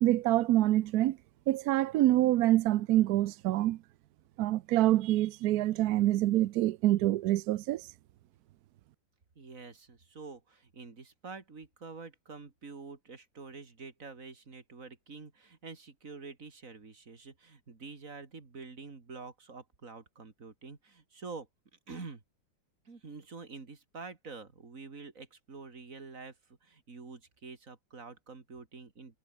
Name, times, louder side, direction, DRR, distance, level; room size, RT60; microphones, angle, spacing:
voice 1, 0.0-1.2 1.5-3.8 4.4-7.9, right 14 dB, 80° right, 0.8 m, -26 dB
voice 2, 9.3-21.5 21.9-22.2 22.8-29.2, right 4 dB, 40° right, 3.1 m, -47 dB
omnidirectional pair, 2.3 m